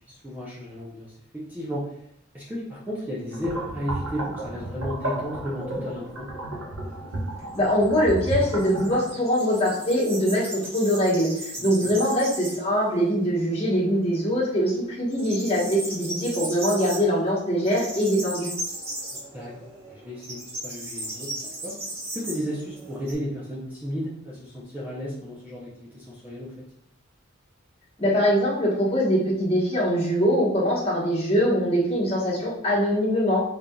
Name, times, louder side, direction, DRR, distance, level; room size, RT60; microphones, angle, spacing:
voice 1, 0.1-1.9 2.3-6.3 11.6-11.9 19.3-21.3 21.6-21.8 22.1-26.6, equal, 10° right, -7 dB, 0.6 m, -34 dB
sound 1, 3.3-9.1, right 1 dB, 90° right, 0.9 m, -33 dB
sound 2, 6.9-12.8 13.1-13.2 13.6-14.4 14.7-23.1, right 1 dB, 30° right, 1.1 m, -37 dB
voice 2, 7.6-10.5 10.7-18.5 28.0-33.4, equal, 30° left, -5 dB, 1.1 m, -23 dB
3.8 x 3.3 x 2.3 m, 0.74 s
head